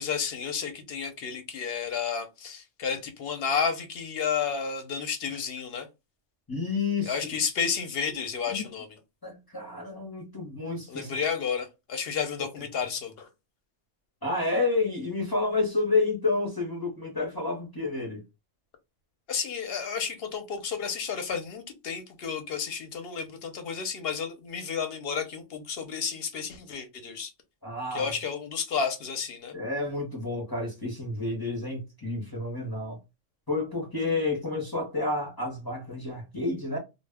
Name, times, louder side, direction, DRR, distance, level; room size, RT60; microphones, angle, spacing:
voice 1, 0.0-5.9 7.0-9.0 10.9-13.3 19.3-27.3 27.9-29.5, left 6 dB, 60° left, 0.7 m, -31 dB
voice 2, 6.5-7.2 8.5-8.7 9.2-11.1 14.2-18.2 27.6-28.1 29.5-33.0 33.5-36.8, left 3 dB, 25° left, 0.5 m, -30 dB
2.1 x 2.0 x 3.3 m
omnidirectional pair, 1.3 m